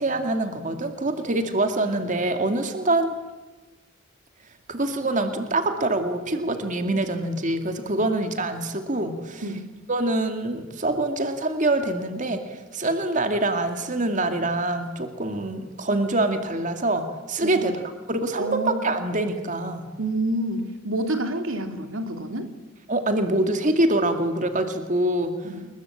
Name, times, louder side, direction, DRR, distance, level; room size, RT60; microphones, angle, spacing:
voice 1, 0.0-3.1 4.7-9.4 9.9-17.8 18.1-19.9 22.9-25.4, right 2 dB, 40° right, 6 dB, 2.4 m, -25 dB
voice 2, 17.4-17.7 18.4-18.9 20.0-22.5 25.4-25.7, right 1 dB, 85° right, 6 dB, 2.9 m, -28 dB
29.0 x 22.0 x 8.7 m, 1.2 s
head